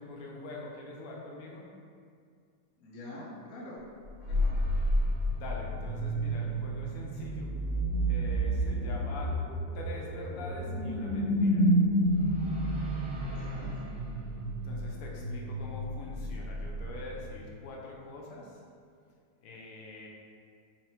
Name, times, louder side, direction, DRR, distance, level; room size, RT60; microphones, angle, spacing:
voice 1, 0.0-1.7 5.3-7.5 8.1-9.4 9.7-11.7 14.6-18.6 19.4-20.1, left 2 dB, 80° left, -2 dB, 1.5 m, -44 dB
voice 2, 2.8-3.8 4.2-4.6 13.1-13.8, left 1 dB, 55° left, -6 dB, 1.2 m, -46 dB
sound 1, 4.0-17.5, right 1 dB, 85° right, 0.6 m, -30 dB
4.3 x 3.9 x 3.0 m, 2.2 s
omnidirectional pair, 2.4 m